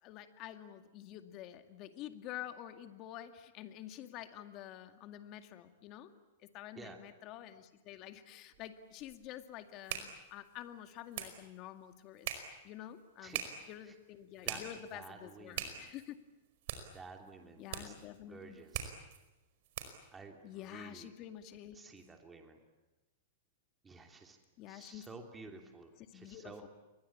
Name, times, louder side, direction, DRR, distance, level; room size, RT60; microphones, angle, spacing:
voice 1, 0.0-6.1 6.4-16.2 17.6-18.6 20.4-21.8 24.6-25.1 26.0-26.7, left 12 dB, 35° left, 8 dB, 2.1 m, -48 dB
sound 1, 8.5-20.1, right 10 dB, 55° right, 5.0 m, -45 dB
voice 2, 13.2-13.5 13.8-13.9 14.4-14.6 14.9-15.9 16.9-17.9 18.3-18.9 20.1-21.1 21.7-22.6 23.8-24.4 24.7-26.7, right 3 dB, 10° right, 4 dB, 3.0 m, -52 dB
29.5 x 23.0 x 8.7 m, 1.0 s
supercardioid pair, 150°, 0 cm